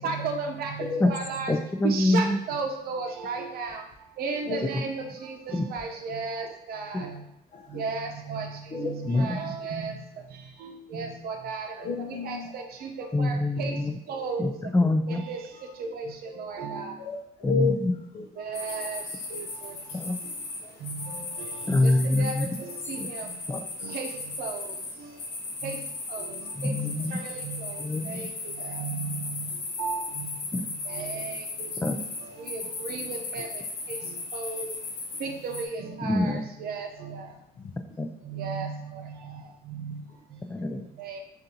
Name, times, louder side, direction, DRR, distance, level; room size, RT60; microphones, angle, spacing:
voice 1, 0.0-1.5 1.8-3.8 4.2-7.1 7.7-8.5 8.8-9.9 10.9-11.7 12.2-12.6 13.2-13.3 13.6-13.7 14.1-14.5 15.1-15.4 15.8-16.9 18.4-19.0 19.3-19.4 20.8-21.2 21.8-22.3 22.9-23.3 23.8-24.1 24.4-24.6 25.6-25.8 26.1-26.2 26.6-27.8 28.1-28.3 28.7-29.4 29.8-30.3 30.9-31.7 32.4-33.5 34.3-34.7 35.2-37.2 38.3-38.7 39.8-39.9 41.0-41.2, right 4 dB, 65° right, 4 dB, 0.7 m, -34 dB
voice 2, 1.5-2.4 5.5-5.7 9.1-9.5 13.1-14.0 14.4-15.2 17.4-17.9 19.9-20.2 21.7-22.5 23.0-23.1 23.5-23.6 26.5-27.2 27.8-28.3 30.5-30.6 31.8-32.0 36.0-36.5 38.0-38.1 40.5-40.9, left 2 dB, 10° left, 7 dB, 0.3 m, -25 dB
voice 3, 4.4-4.9 5.2-5.3 6.4-6.5 7.5-7.8 8.7-9.1 11.8-12.6 13.6-13.8 14.1-14.5 15.5-15.6 17.0-18.7 20.6-20.8 27.8-28.2 37.5-37.8 40.1-40.2, left 4 dB, 45° left, -2 dB, 0.7 m, -34 dB
sound 1, 18.5-35.6, left 3 dB, 65° left, 1.2 m, -37 dB
6.4 x 2.6 x 2.8 m, 0.82 s
cardioid pair, 110°, 17 cm